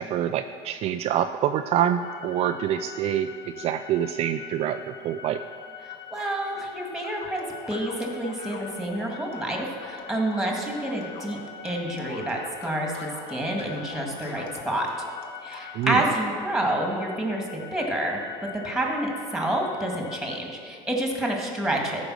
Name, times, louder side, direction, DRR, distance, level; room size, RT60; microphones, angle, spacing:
voice 1, 0.0-3.3 3.6-5.4 15.7-16.0, right 10 dB, 45° right, 8 dB, 0.4 m, -26 dB
sound 1, 2.0-20.4, left 8 dB, 90° left, 1.0 m, -44 dB
voice 2, 5.8-11.4 11.6-14.9 15.4-22.0, right 1 dB, 5° right, 0 dB, 2.0 m, -28 dB
sound 2, 7.0-16.3, left 3 dB, 40° left, 1.3 m, -44 dB
13.5 x 5.1 x 6.4 m, 2.2 s
supercardioid pair, 120°, 15 cm